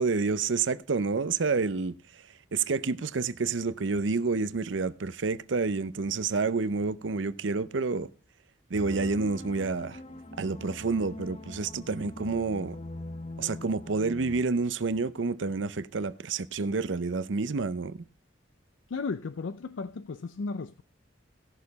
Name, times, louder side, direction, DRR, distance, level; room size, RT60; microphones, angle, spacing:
voice 1, 0.0-1.9 2.5-8.1 8.7-10.0 10.4-12.8 13.4-18.0, right 4 dB, 70° right, 0.6 m, -29 dB
sound 1, 8.7-14.4, left 1 dB, 30° left, 0.7 m, -42 dB
voice 2, 18.9-20.8, left 4 dB, 75° left, 0.5 m, -35 dB
16.5 x 6.7 x 4.0 m
head